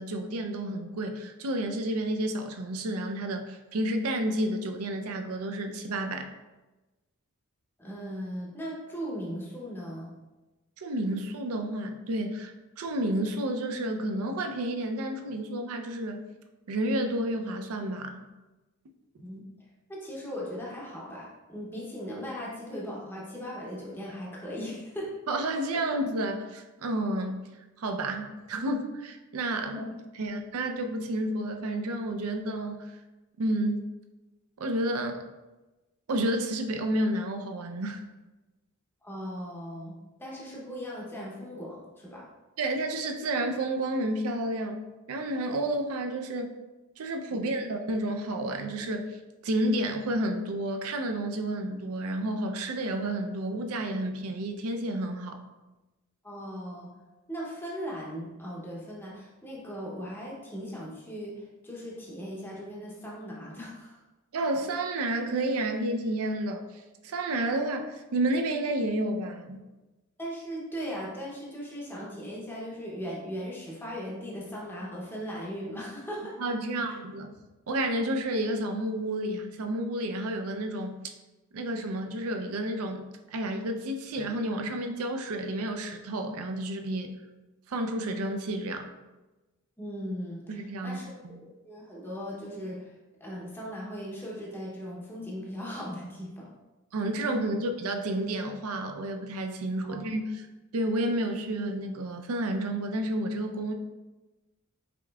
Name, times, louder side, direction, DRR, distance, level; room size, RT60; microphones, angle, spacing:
voice 1, 0.0-6.3 10.8-16.2 16.7-18.3 25.3-27.4 27.8-29.8 30.2-33.0 33.4-33.8 34.6-35.2 36.1-38.0 42.6-44.8 45.1-46.5 47.0-49.2 49.4-55.4 64.3-66.6 67.0-69.6 76.4-77.3 77.7-81.0 81.5-87.1 87.7-88.9 90.5-91.4 96.9-100.5 100.7-103.7, right 1 dB, 70° right, 5 dB, 0.5 m, -30 dB
voice 2, 7.8-10.1 19.2-19.4 19.9-25.1 29.6-30.0 39.0-42.3 47.3-47.5 56.2-56.9 57.3-64.0 70.2-76.4 76.9-77.0 89.8-92.9 93.2-96.5 97.2-97.3 99.8-100.0, equal, 10° left, -4 dB, 0.7 m, -38 dB
5.1 x 3.5 x 2.2 m, 1.1 s
head